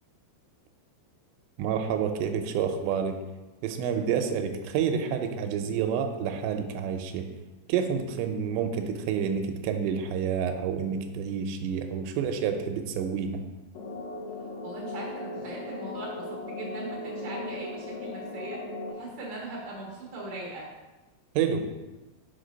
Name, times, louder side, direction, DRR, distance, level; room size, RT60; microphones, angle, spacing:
voice 1, 1.6-3.2 3.6-7.3 7.7-13.4 21.4-21.6, right 7 dB, 90° right, 6 dB, 2.9 m, -29 dB
sound 1, 13.8-18.9, left 2 dB, 75° left, 3.3 m, -37 dB
voice 2, 14.6-18.6 18.9-20.6, right 2 dB, 60° right, -3 dB, 1.9 m, -40 dB
5.9 x 5.9 x 5.1 m, 1.1 s
omnidirectional pair, 5.0 m